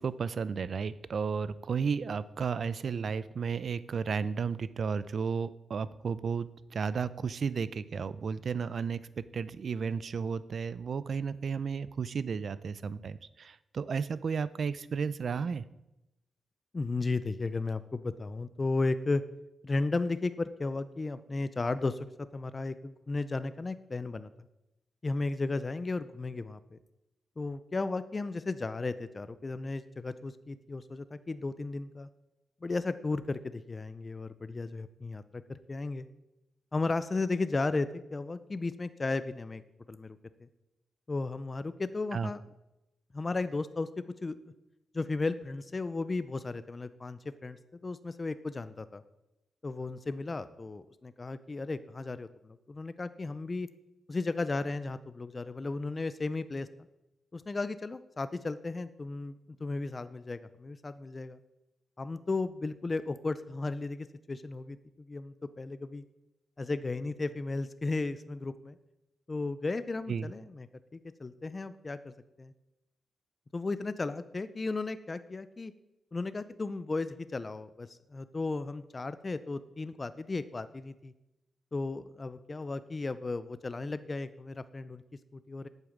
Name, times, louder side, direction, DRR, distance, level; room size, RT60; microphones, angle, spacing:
voice 1, 0.0-15.6 42.1-42.3 70.1-70.3, right 6 dB, 50° right, 16 dB, 0.5 m, -33 dB
voice 2, 16.7-19.2 19.6-24.3 25.0-26.8 27.4-32.1 32.6-36.1 36.7-39.6 39.9-40.5 41.1-42.4 43.1-44.4 44.9-49.0 49.6-53.7 54.1-56.7 57.3-61.4 62.0-66.0 66.6-68.8 69.3-70.7 70.9-72.5 73.5-75.7 76.1-81.1 81.7-85.0 85.3-85.7, left 3 dB, 25° left, 13 dB, 0.5 m, -35 dB
8.8 x 8.2 x 7.2 m, 0.91 s
wide cardioid pair, 140°, 0 cm